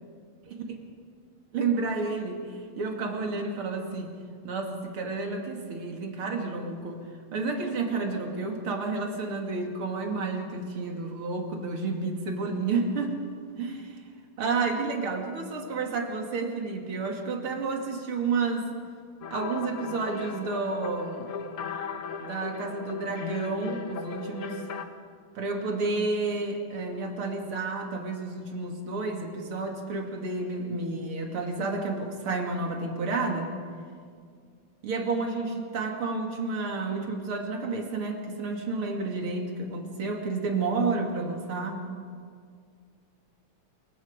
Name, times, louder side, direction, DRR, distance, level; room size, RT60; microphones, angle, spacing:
voice 1, 1.5-4.1 4.4-7.0 7.3-13.2 13.6-14.0 14.4-18.7 19.3-21.3 22.2-24.6 25.3-33.5 34.8-41.8, right 3 dB, 80° right, 2 dB, 3.2 m, -30 dB
sound 1, 19.2-24.8, left 6 dB, 85° left, 2.3 m, -37 dB
27.5 x 24.0 x 5.2 m, 2.1 s
omnidirectional pair, 2.4 m